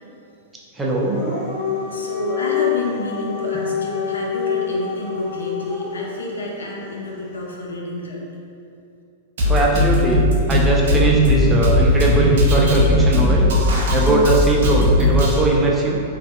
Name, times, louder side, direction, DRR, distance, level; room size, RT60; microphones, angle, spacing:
voice 1, 0.8-1.2 9.5-13.5 13.9-16.0, right 2 dB, 15° right, -3 dB, 0.4 m, -19 dB
Dog, 0.9-6.1, left 7 dB, 20° left, 1.4 m, -26 dB
voice 2, 1.7-8.2, left 1 dB, 85° left, -2 dB, 0.4 m, -29 dB
Drum kit, 9.4-15.4, left 1 dB, 70° right, 0.4 m, -17 dB
2.5 x 2.4 x 2.4 m, 2.5 s
hypercardioid pair, 110°, 0 cm